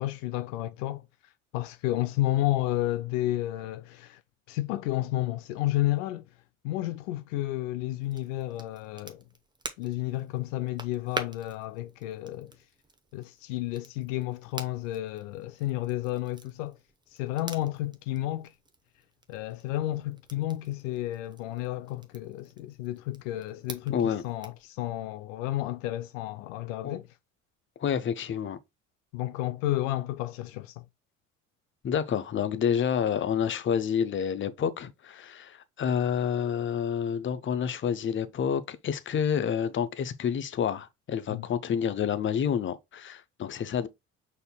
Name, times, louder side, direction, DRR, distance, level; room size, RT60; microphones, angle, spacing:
voice 1, 0.0-4.2 4.5-6.3 6.6-9.2 9.8-12.5 13.1-16.8 17.1-18.5 19.3-27.1 29.1-30.9 41.3-41.5, left 15 dB, 70° left, 0.5 m, -31 dB
Crackle, 8.0-24.7, right 2 dB, 10° right, 0.8 m, -46 dB
voice 2, 23.9-24.2 26.8-27.0 27.8-28.6 31.8-43.9, left 8 dB, 30° left, 0.7 m, -29 dB
5.2 x 4.3 x 2.2 m
hypercardioid pair, 65°, 39 cm